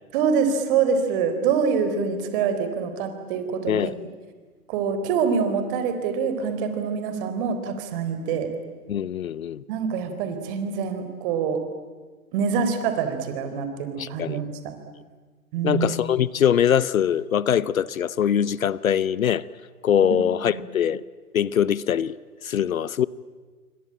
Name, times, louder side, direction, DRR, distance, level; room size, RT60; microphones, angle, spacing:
voice 1, 0.1-3.9 4.7-8.5 9.7-11.6 12.3-14.7 15.5-15.9 20.0-20.2 20.5-20.6, right 6 dB, 35° right, 9 dB, 4.0 m, -25 dB
voice 2, 8.9-9.6 14.0-14.4 15.6-19.4 19.8-21.0 21.3-22.1 22.4-23.1, left 9 dB, 65° left, 20 dB, 0.9 m, -22 dB
28.0 x 24.0 x 8.7 m, 1.4 s
figure-of-eight pair, 125°, 45 cm